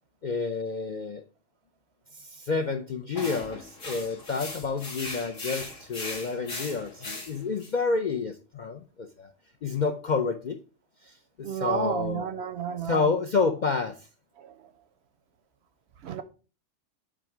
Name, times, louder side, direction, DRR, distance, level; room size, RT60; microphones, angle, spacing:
voice 1, 0.2-1.2 2.1-9.3 9.6-10.6 11.0-12.2 12.8-14.1, left 4 dB, 60° left, 0.5 m, -29 dB
sound 1, 3.1-7.7, left 2 dB, 80° left, 2.7 m, -38 dB
voice 2, 11.4-13.0 14.4-14.5 16.0-16.2, right 7 dB, 65° right, 0.7 m, -31 dB
7.6 x 3.5 x 4.8 m
omnidirectional pair, 1.4 m